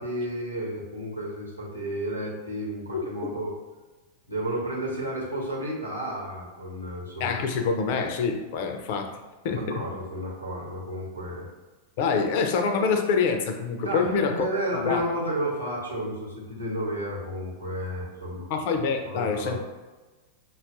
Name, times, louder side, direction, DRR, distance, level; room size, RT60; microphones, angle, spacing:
voice 1, 0.0-3.5 4.3-7.3 9.5-11.5 13.8-18.5 19.0-19.6, right 1 dB, 85° right, -5 dB, 1.1 m, -32 dB
voice 2, 2.9-3.3 7.2-9.2 9.4-9.8 12.0-15.0 18.5-19.6, left 5 dB, 50° left, 5 dB, 0.5 m, -26 dB
5.6 x 2.3 x 2.5 m, 1.2 s
figure-of-eight pair, 90°, 0 cm